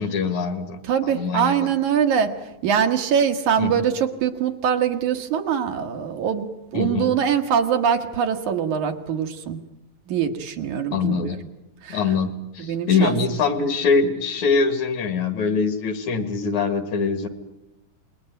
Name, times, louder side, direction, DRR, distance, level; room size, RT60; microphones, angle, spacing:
voice 1, 0.0-1.5 3.6-3.8 6.7-7.2 10.9-11.4 11.9-17.3, left 5 dB, 60° left, 10 dB, 2.9 m, -23 dB
voice 2, 0.9-2.3 2.6-9.6 10.1-11.4 11.8-12.0 12.6-13.2, right 8 dB, 65° right, 5 dB, 2.7 m, -23 dB
27.0 x 21.5 x 9.2 m, 0.89 s
omnidirectional pair, 3.9 m